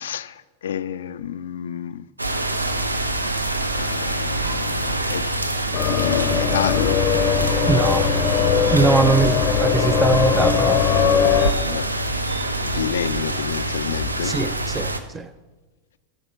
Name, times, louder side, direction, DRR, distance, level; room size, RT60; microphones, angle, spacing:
voice 1, 0.0-2.1 3.7-5.3 5.8-7.0 9.1-9.6 11.6-12.0 12.6-14.4, left 9 dB, 60° left, 0.3 m, -29 dB
sound 1, 2.2-15.0, right 2 dB, 80° right, 0.6 m, -25 dB
sound 2, 4.3-14.8, right 1 dB, 65° right, 1.8 m, -41 dB
sound 3, 5.7-11.5, left 7 dB, 30° left, 0.7 m, -20 dB
voice 2, 7.7-8.1 8.7-10.8 14.2-15.3, right 4 dB, 15° right, 0.5 m, -21 dB
7.1 x 6.7 x 6.7 m
figure-of-eight pair, 90°, 0 cm